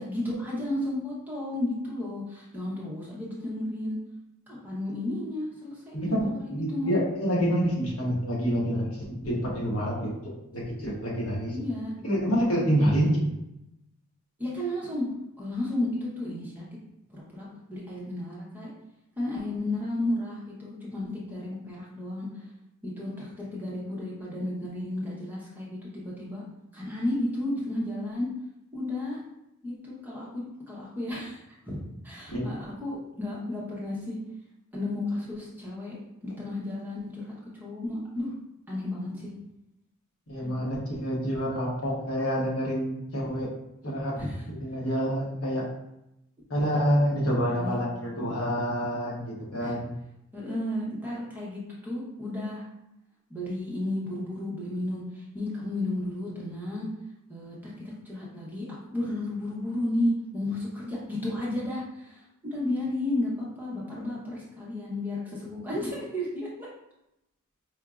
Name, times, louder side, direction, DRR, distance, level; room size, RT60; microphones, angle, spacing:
voice 1, 0.0-4.0 4.5-7.0 11.5-11.9 12.8-13.1 14.4-15.0 15.4-16.6 17.1-18.7 19.2-22.3 22.8-26.4 26.7-28.3 28.7-29.2 29.6-31.8 32.0-34.2 34.7-36.0 36.2-37.3 37.6-38.3 38.7-39.3 40.4-40.5 44.2-44.4 46.6-46.7 47.5-47.8 49.6-49.7 50.3-52.6 53.3-56.9 57.3-57.7 58.0-66.5, left 1 dB, 10° right, -6 dB, 0.8 m, -33 dB
voice 2, 5.9-10.1 10.5-11.5 12.0-13.2 32.3-32.4 40.3-43.5 43.8-44.1 44.6-45.6 46.5-49.9, equal, 65° left, -4 dB, 1.0 m, -27 dB
4.8 x 2.6 x 2.3 m, 0.86 s
head